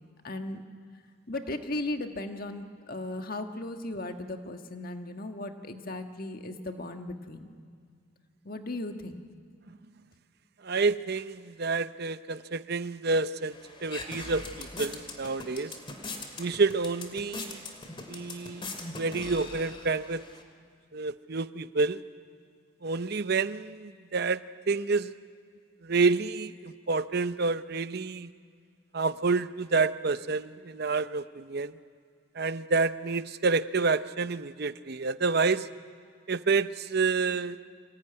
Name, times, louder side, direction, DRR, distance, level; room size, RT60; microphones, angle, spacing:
voice 1, 0.2-0.6 1.3-7.5 8.4-9.2, left 2 dB, 45° left, 5 dB, 1.6 m, -36 dB
voice 2, 10.6-15.7 16.4-17.6 18.1-18.6 19.0-20.2 20.9-22.0 22.8-24.4 24.7-25.1 25.8-28.3 28.9-31.7 32.4-35.7 36.3-37.6, right 4 dB, 50° right, 13 dB, 0.7 m, -28 dB
sound 1, 13.5-20.4, left 3 dB, 25° left, 2.6 m, -41 dB
26.5 x 19.5 x 9.7 m, 2.2 s
head